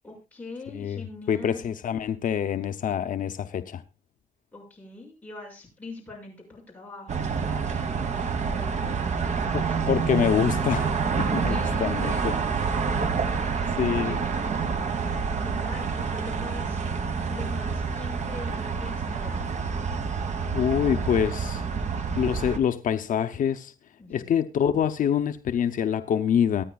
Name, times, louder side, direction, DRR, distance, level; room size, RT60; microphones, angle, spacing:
voice 1, 0.0-1.7 4.5-9.8 11.4-12.6 13.3-16.8 17.3-19.4 24.0-24.4, left 2 dB, 10° left, 6.6 m, -43 dB
voice 2, 1.3-3.8 9.5-11.5 11.8-12.1 13.8-14.2 20.5-21.6 22.2-23.7 24.1-26.6, left 8 dB, 70° left, 0.7 m, -25 dB
sound 1, 7.1-22.6, right 5 dB, 55° right, 1.4 m, -28 dB
24.0 x 9.4 x 2.3 m
wide cardioid pair, 175°, 14 cm